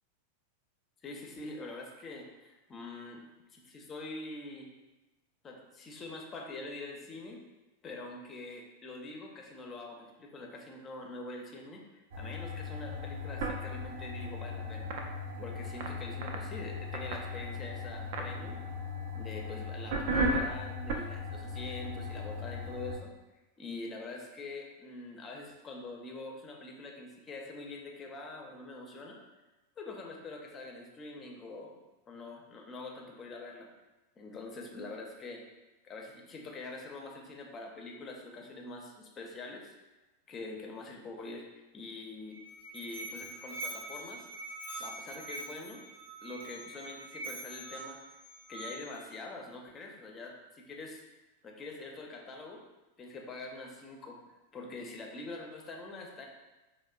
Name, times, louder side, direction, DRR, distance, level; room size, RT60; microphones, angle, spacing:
voice 1, 1.0-3.2 3.5-4.7 5.4-7.4 7.8-14.9 15.4-18.6 19.1-23.1 23.6-29.2 29.8-31.8 32.1-33.7 34.2-35.4 35.8-39.7 40.3-41.4 41.7-42.4 42.7-44.3 44.8-45.9 46.2-48.0 48.5-51.0 51.4-52.6 53.0-54.2 54.5-56.3, left 2 dB, 25° left, 1 dB, 0.5 m, -44 dB
sound 1, 12.1-23.0, left 1 dB, 50° right, 0.3 m, -36 dB
Musical instrument, 42.2-49.1, right 2 dB, 80° right, 0.9 m, -44 dB
4.1 x 2.0 x 2.3 m, 1.1 s
figure-of-eight pair, 90°, 0 cm